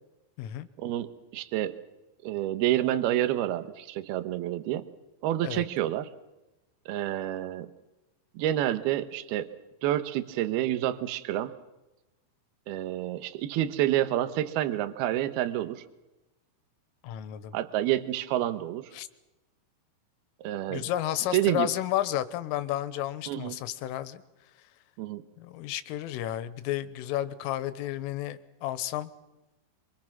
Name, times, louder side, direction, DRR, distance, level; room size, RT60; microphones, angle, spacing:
voice 1, 0.8-1.7 2.2-4.9 5.2-6.1 6.9-7.7 8.4-9.5 9.8-11.5 12.7-15.8 17.5-18.9 20.4-20.8 21.3-21.7 23.3-23.6 25.0-25.2, right 13 dB, 70° right, 12 dB, 2.6 m, -28 dB
voice 2, 17.0-17.6 18.9-19.1 20.7-24.2 25.4-29.1, left 13 dB, 90° left, 14 dB, 3.7 m, -32 dB
28.0 x 24.5 x 6.0 m, 1.0 s
omnidirectional pair, 5.7 m